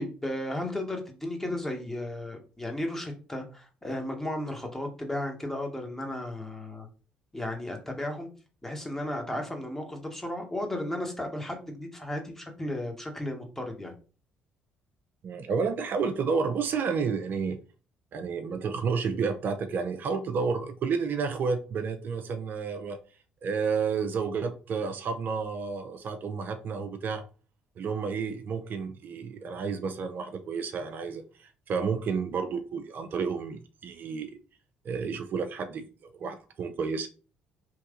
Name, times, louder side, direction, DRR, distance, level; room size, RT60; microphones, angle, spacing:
voice 1, 0.0-6.9 7.3-8.3 8.6-13.9, left 1 dB, 10° left, 1.3 m, -34 dB
voice 2, 15.2-17.6 18.1-23.0 23.4-27.2 27.8-34.3 34.8-37.1, right 5 dB, 55° right, 0.4 m, -31 dB
3.1 x 2.5 x 3.8 m
hypercardioid pair, 55°, 4 cm